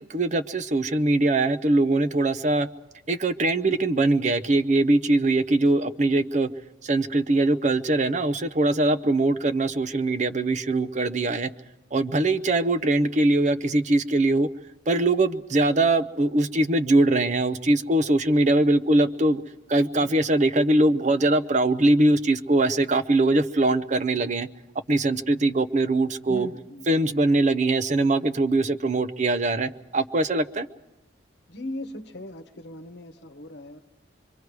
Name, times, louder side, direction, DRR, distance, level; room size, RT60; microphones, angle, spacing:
voice 1, 0.0-2.7 3.1-6.5 6.8-11.5 11.9-14.5 14.9-19.4 19.7-24.5 24.9-26.5 26.9-30.7, right 2 dB, 40° right, 11 dB, 0.7 m, -22 dB
voice 2, 26.3-26.9 31.5-33.8, left 1 dB, 60° left, 7 dB, 1.1 m, -38 dB
25.5 x 24.0 x 4.7 m, 1.0 s
head